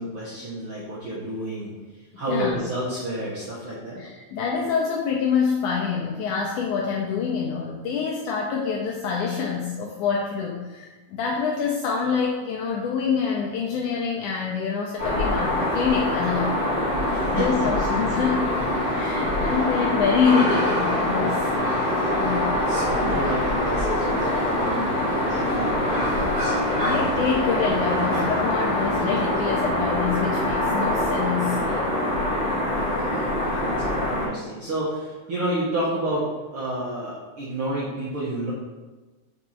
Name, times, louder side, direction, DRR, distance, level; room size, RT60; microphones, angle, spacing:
voice 1, 0.0-4.0 17.1-17.7 19.1-19.8 21.8-22.4 22.7-24.9 25.2-26.6 32.8-36.3 36.5-38.5, right 1 dB, 65° right, -9 dB, 1.3 m, -31 dB
voice 2, 2.3-2.6 4.0-16.7 17.3-18.5 18.9-21.5 22.1-22.4 23.0-23.3 26.8-31.9, left 6 dB, 85° left, -1 dB, 1.8 m, -26 dB
sound 1, 15.0-34.3, left 1 dB, 25° right, 1.6 m, -24 dB
5.0 x 4.5 x 4.3 m, 1.2 s
omnidirectional pair, 4.1 m